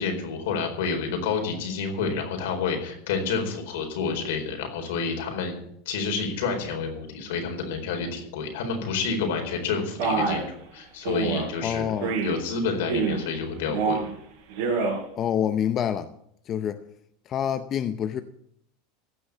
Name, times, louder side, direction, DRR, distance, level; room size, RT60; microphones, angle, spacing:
voice 1, 0.0-5.6 5.9-10.5 10.7-11.9 12.2-14.0, left 5 dB, 80° left, 4.4 m, -29 dB
Male speech man speaking, 10.0-10.5 11.1-11.5 12.0-12.4 12.8-13.3 13.7-14.1 14.5-15.0, right 4 dB, 65° right, 4.6 m, -26 dB
voice 2, 11.6-12.2 15.2-16.1 16.5-16.8 17.3-18.2, left 9 dB, 35° left, 0.6 m, -27 dB
15.5 x 6.3 x 8.3 m
supercardioid pair, 140°, 0 cm